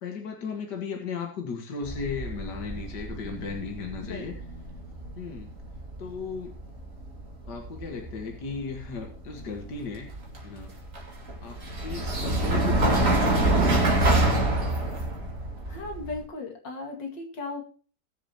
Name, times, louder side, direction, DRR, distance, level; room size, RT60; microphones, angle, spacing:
voice 1, 0.0-4.5 5.2-5.5 6.0-6.6 7.5-10.1 10.4-10.7 11.4-14.2, left 4 dB, 70° left, 3 dB, 2.3 m, -36 dB
sound 1, 1.8-16.2, right 2 dB, 45° right, 2.7 m, -27 dB
voice 2, 15.7-17.6, left 3 dB, 85° left, 2 dB, 2.9 m, -36 dB
19.5 x 7.1 x 2.9 m, 0.40 s
omnidirectional pair, 1.9 m